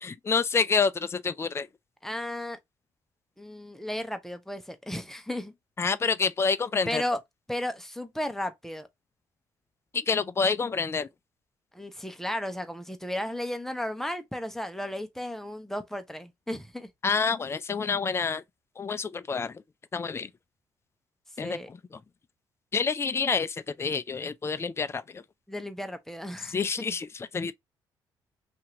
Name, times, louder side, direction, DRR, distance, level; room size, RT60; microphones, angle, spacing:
voice 1, 0.0-1.7 5.8-7.0 9.9-11.1 17.0-18.4 18.8-19.6 19.9-20.3 21.4-21.6 22.7-25.2 26.5-27.5, left 5 dB, 25° left, 0.4 m, -28 dB
voice 2, 2.0-2.6 3.4-5.5 6.9-7.2 7.5-8.9 11.7-16.9 21.4-21.7 25.5-26.9, left 1 dB, 5° left, 0.8 m, -34 dB
2.8 x 2.5 x 2.8 m
supercardioid pair, 60°, 10 cm